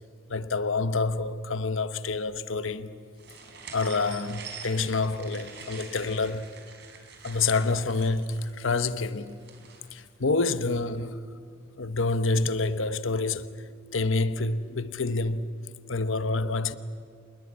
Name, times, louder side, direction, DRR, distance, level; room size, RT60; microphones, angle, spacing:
voice 1, 0.3-2.9 3.7-6.5 7.2-9.4 9.9-11.2 11.8-13.5 13.9-15.5 15.9-16.7, left 3 dB, 75° left, 1.0 m, -27 dB
sound 1, 3.2-10.0, right 5 dB, 60° right, 4.2 m, -45 dB
26.5 x 21.0 x 8.5 m
head